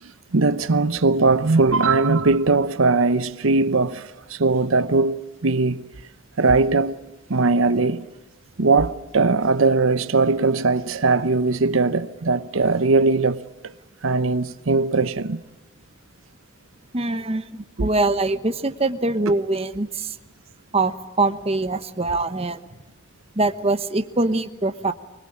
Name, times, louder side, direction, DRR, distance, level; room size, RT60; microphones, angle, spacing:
voice 1, 0.0-5.8 6.4-7.0 7.3-8.1 8.6-13.7 14.0-15.4 17.8-17.9, right 3 dB, 80° right, 0.8 m, -20 dB
voice 2, 16.9-20.1 20.7-22.6 23.4-24.9, right 2 dB, 30° right, 1.1 m, -23 dB
25.0 x 20.5 x 8.7 m
head